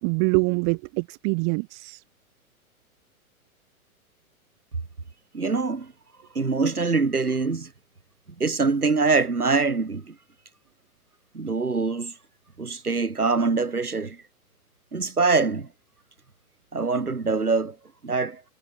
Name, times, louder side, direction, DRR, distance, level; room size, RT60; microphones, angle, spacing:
voice 1, 0.0-2.0, right 40 dB or more, 35° right, 2.7 m, -24 dB
voice 2, 5.3-5.9 6.3-7.7 8.4-10.1 11.3-12.1 12.6-14.2 14.9-15.7 16.7-17.8 18.0-18.4, right 4 dB, 90° right, 4.4 m, -24 dB
figure-of-eight pair, 115°, 44 cm